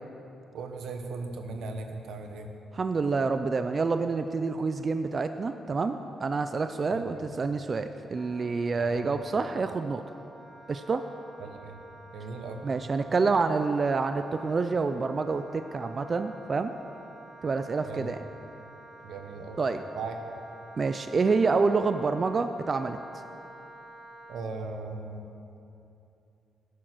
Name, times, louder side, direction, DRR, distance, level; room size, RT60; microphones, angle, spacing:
voice 1, 0.5-2.5 6.9-7.2 8.8-9.2 11.4-11.8 12.1-12.6 17.8-18.1 19.0-19.6 19.9-20.2 24.3-25.2, right 3 dB, 85° right, 5 dB, 1.3 m, -38 dB
voice 2, 2.7-10.0 10.7-11.0 12.6-16.7 17.4-18.2 19.6-19.8 20.8-23.0, right 4 dB, 35° right, 9 dB, 0.4 m, -27 dB
Wind instrument woodwind instrument, 8.2-24.4, right 2 dB, ahead, 2.1 m, -50 dB
13.0 x 10.0 x 6.2 m, 2.9 s
cardioid pair, 120°, 0 cm